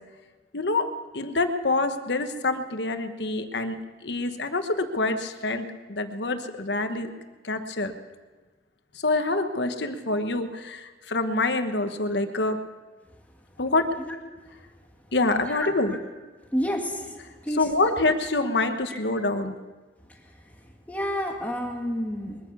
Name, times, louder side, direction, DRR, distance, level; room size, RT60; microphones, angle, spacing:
voice 1, 0.5-0.9 1.1-7.1 7.4-7.9 8.9-12.6 13.6-13.9 15.1-15.9 17.5-19.5, left 2 dB, 75° left, 8 dB, 1.2 m, -26 dB
voice 2, 16.5-17.6 18.9-19.0 20.2-20.3 20.9-22.4, equal, 10° left, 1 dB, 1.8 m, -30 dB
22.0 x 9.5 x 6.9 m, 1.3 s
head